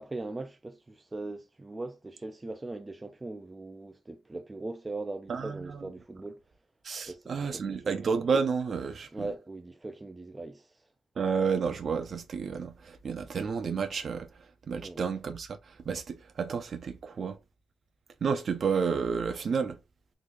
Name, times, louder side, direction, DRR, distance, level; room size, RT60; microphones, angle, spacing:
voice 1, 0.0-6.5 7.1-7.9 9.1-10.9 14.8-15.0, right 2 dB, 20° right, 0.4 m, -40 dB
voice 2, 5.3-5.6 6.8-9.3 11.2-14.3 14.7-17.4 18.2-19.8, right 5 dB, 55° right, 0.7 m, -31 dB
3.8 x 3.2 x 2.4 m
cardioid pair, 70°, 0 cm